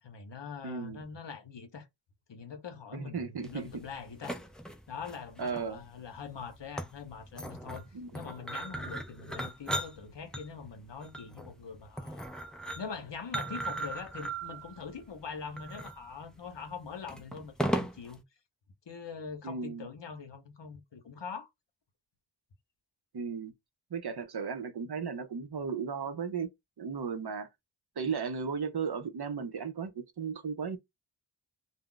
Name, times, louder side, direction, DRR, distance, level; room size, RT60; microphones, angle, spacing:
voice 1, 0.0-1.9 2.3-4.4 4.9-12.2 12.7-18.2 18.9-21.5, left 5 dB, 65° left, 0.7 m, -43 dB
voice 2, 0.6-1.0 2.9-3.7 5.4-5.8 7.9-8.1 19.4-19.9 23.1-23.5 23.9-26.5 26.8-27.5 28.0-30.8, right 5 dB, 55° right, 0.6 m, -35 dB
sound 1, 3.4-18.2, right 1 dB, ahead, 0.3 m, -38 dB
2.3 x 2.0 x 3.7 m
wide cardioid pair, 60°, 47 cm